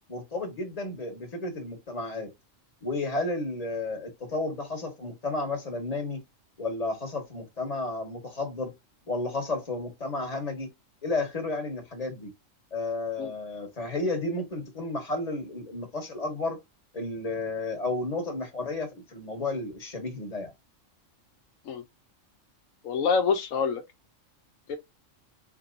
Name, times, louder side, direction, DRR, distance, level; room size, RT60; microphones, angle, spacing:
voice 1, 0.1-2.3 2.8-6.2 6.6-8.7 9.1-10.7 11.0-12.3 12.7-16.6 16.9-20.5, left 2 dB, 30° left, 1.5 m, -32 dB
voice 2, 22.8-23.8 24.7-24.8, left 5 dB, 85° left, 1.1 m, -26 dB
4.3 x 4.0 x 2.6 m
omnidirectional pair, 1.3 m